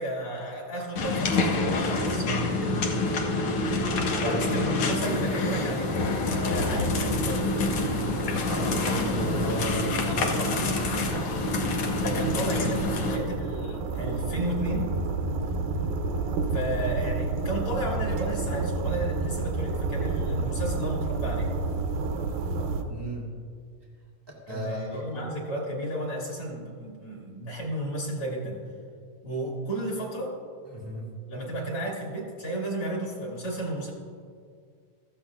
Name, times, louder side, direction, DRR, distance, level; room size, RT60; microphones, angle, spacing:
voice 1, 0.0-2.5 4.2-5.9 6.3-7.5 11.9-14.9 16.5-21.5 24.5-28.6 29.2-30.3 31.3-33.9, right 1 dB, 45° left, -3 dB, 2.8 m, -33 dB
sound 1, 1.0-13.2, left 2 dB, 75° left, 1.2 m, -27 dB
voice 2, 2.4-2.9 3.7-4.7 8.3-11.2 12.1-12.2 12.5-12.6 22.9-23.3 24.3-25.2 30.7-31.1, equal, 25° right, -4 dB, 0.5 m, -36 dB
sound 2, 6.6-22.8, right 3 dB, 80° right, 2.4 m, -31 dB
16.0 x 14.0 x 2.4 m, 2.2 s
omnidirectional pair, 4.0 m